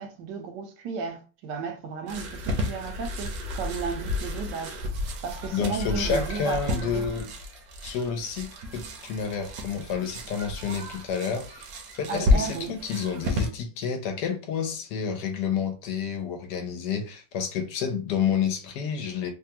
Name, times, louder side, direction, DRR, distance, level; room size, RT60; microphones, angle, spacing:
voice 1, 0.0-4.8 5.2-7.2 12.1-12.7, right 5 dB, 80° right, 1.2 m, -34 dB
sound 1, 2.1-13.5, left 2 dB, 65° right, 1.1 m, -31 dB
voice 2, 5.5-7.3 7.8-19.3, left 6 dB, 75° left, 1.2 m, -30 dB
3.3 x 2.3 x 2.8 m
omnidirectional pair, 1.9 m